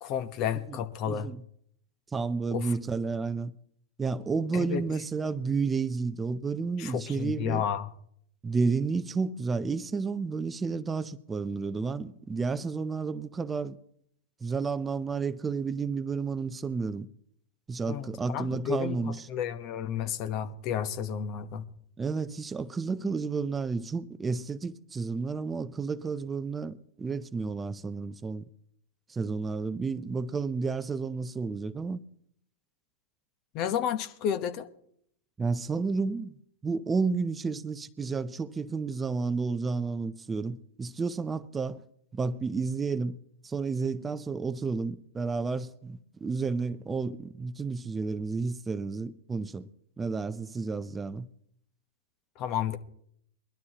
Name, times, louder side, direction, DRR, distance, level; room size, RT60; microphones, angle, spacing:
voice 1, 0.0-1.3 2.5-2.7 4.5-4.8 6.8-7.9 17.9-21.6 33.5-34.7 52.4-52.8, left 9 dB, 45° left, 1.0 m, -31 dB
voice 2, 1.1-1.4 2.1-3.5 4.0-7.6 8.4-13.8 14.4-17.1 17.7-19.3 22.0-28.4 29.1-32.0 35.4-36.3 36.6-41.8 42.1-43.2 43.4-49.7 50.0-51.3, right 4 dB, 15° right, 0.5 m, -31 dB
22.0 x 12.0 x 2.9 m
hypercardioid pair, 105°, 0 cm